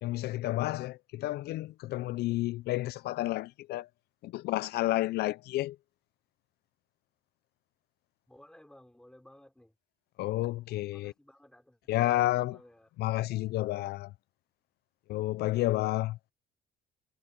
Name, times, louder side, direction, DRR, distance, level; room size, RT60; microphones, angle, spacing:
voice 1, 0.0-3.9 4.2-5.8 10.2-11.1 11.9-12.6 13.0-14.1 15.1-16.2, left 16 dB, 70° left, 0.5 m, -30 dB
voice 2, 8.3-9.7 10.9-12.9, left 1 dB, 5° left, 4.5 m, -57 dB
cardioid pair, 110°, 17 cm